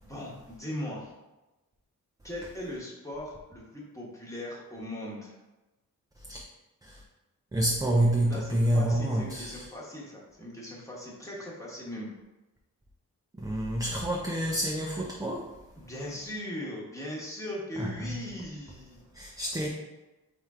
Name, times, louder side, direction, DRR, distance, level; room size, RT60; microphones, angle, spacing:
voice 1, 0.0-1.1 2.2-5.3 8.2-12.1 15.8-19.3, left 1 dB, 10° left, -5 dB, 1.1 m, -39 dB
voice 2, 7.5-9.7 13.4-15.5 17.8-18.1 19.1-19.7, right 1 dB, 10° right, -2 dB, 0.4 m, -28 dB
4.3 x 3.2 x 3.6 m, 1.0 s
wide cardioid pair, 135°, 34 cm